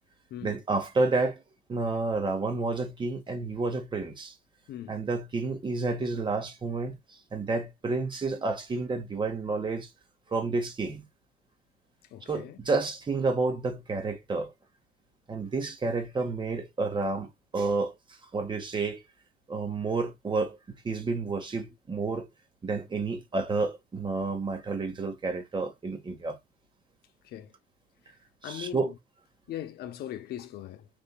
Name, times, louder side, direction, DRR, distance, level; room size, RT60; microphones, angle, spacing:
voice 1, 0.4-1.4 1.7-4.3 4.9-7.0 7.3-9.9 10.3-11.1 12.3-14.5 15.3-19.0 19.5-20.6 20.8-22.3 22.6-26.4 28.4-28.9, right 3 dB, 30° right, 1.8 m, -30 dB
voice 2, 12.1-12.6 27.2-27.5 28.4-28.9 29.5-30.9, left 11 dB, 70° left, 0.8 m, -39 dB
5.2 x 3.6 x 2.3 m
cardioid pair, 110°, 17 cm